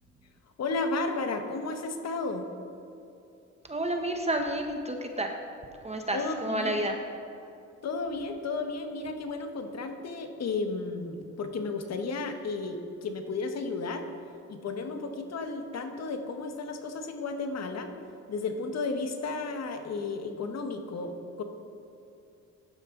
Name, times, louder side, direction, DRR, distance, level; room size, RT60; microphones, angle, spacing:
voice 1, 0.6-2.5 6.1-7.0 7.8-14.1 14.5-17.9 18.3-21.4, left 3 dB, 60° left, 6 dB, 1.5 m, -33 dB
voice 2, 3.7-5.3 5.8-6.9, right 1 dB, 20° right, 3 dB, 1.2 m, -30 dB
16.0 x 11.5 x 3.9 m, 2.7 s
cardioid pair, 90°, 30 cm